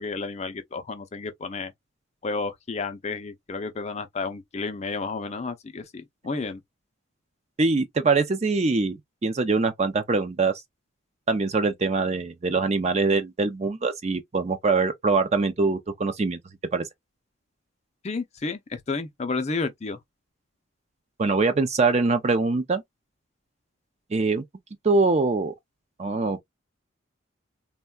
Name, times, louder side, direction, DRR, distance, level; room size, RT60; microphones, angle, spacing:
voice 1, 0.0-1.7 2.2-6.6 18.0-20.0, left 4 dB, 35° left, 0.4 m, -31 dB
voice 2, 7.6-10.5 11.3-16.4 16.7-16.8 21.2-22.8 24.1-24.4 24.8-25.5 26.0-26.4, right 3 dB, 30° right, 0.4 m, -23 dB
3.6 x 2.2 x 2.2 m
head